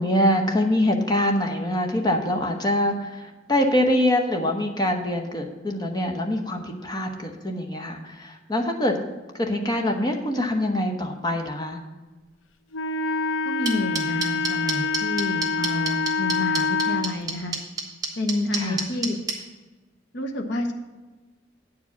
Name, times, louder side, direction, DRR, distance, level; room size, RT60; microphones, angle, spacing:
voice 1, 0.0-9.0 9.3-11.8 18.6-18.9, left 1 dB, 20° left, 2 dB, 1.0 m, -24 dB
Wind instrument woodwind instrument, 12.7-17.1, left 4 dB, 85° left, 0.6 m, -26 dB
voice 2, 13.5-17.6 18.2-19.2 20.1-20.7, left 2 dB, 60° left, 4 dB, 1.0 m, -29 dB
sound 1, 13.7-19.3, right 5 dB, 20° right, 1.4 m, -27 dB
9.0 x 4.8 x 7.1 m, 1.2 s
head